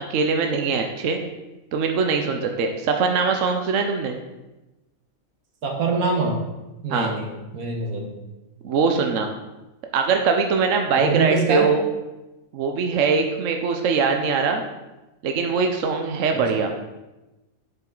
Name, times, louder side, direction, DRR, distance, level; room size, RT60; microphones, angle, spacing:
voice 1, 0.1-1.2 1.7-4.2 6.9-7.1 8.6-9.3 9.9-11.8 12.5-14.6 15.2-16.7, right 5 dB, 65° right, 4 dB, 1.1 m, -22 dB
voice 2, 5.6-6.4 6.8-8.1 10.9-11.7 16.3-16.6, right 4 dB, 80° right, 1 dB, 1.8 m, -24 dB
8.2 x 7.4 x 3.9 m, 1.0 s
omnidirectional pair, 1.5 m